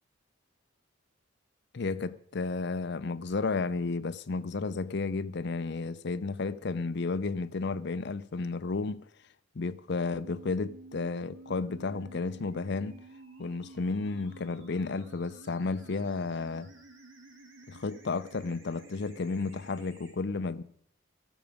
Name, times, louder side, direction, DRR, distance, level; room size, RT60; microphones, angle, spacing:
voice 1, 1.7-9.0 9.5-13.0 13.4-16.7 17.7-20.6, left 3 dB, 55° left, 0.5 m, -32 dB
sound 1, 10.1-20.1, right 3 dB, 65° right, 2.4 m, -52 dB
13.0 x 12.0 x 5.0 m
head